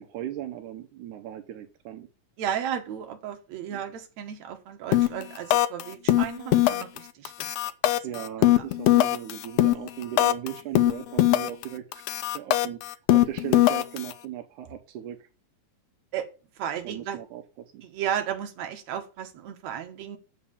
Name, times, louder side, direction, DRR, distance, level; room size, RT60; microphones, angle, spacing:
voice 1, 0.0-2.1 3.7-3.8 8.0-12.0 12.3-15.3 16.8-17.8, right 11 dB, 85° right, 6 dB, 2.3 m, -37 dB
voice 2, 2.4-7.5 7.9-8.0 8.6-8.7 16.1-16.3 16.6-17.2 17.8-20.2, right 9 dB, 65° right, 5 dB, 2.4 m, -34 dB
sound 1, 4.9-5.2 5.5-5.8 6.1-7.0 7.2-10.5 10.7-11.6 11.9-14.1, left 14 dB, 85° left, 1.4 m, -21 dB
7.0 x 5.6 x 7.0 m, 0.34 s
omnidirectional pair, 3.5 m